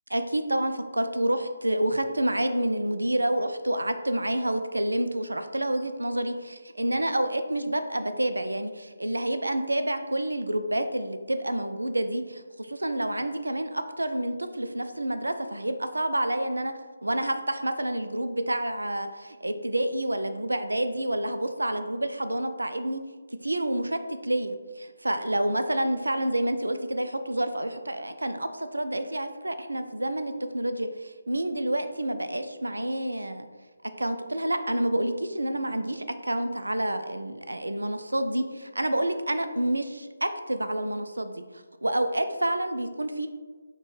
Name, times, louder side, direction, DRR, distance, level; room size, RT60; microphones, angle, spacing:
voice 1, 0.1-16.7 17.0-23.0 23.3-33.4 34.0-41.4 41.8-43.3, right 1 dB, 80° right, 9 dB, 0.3 m, -28 dB
4.1 x 2.2 x 3.0 m, 1.4 s
figure-of-eight pair, 150°, 0 cm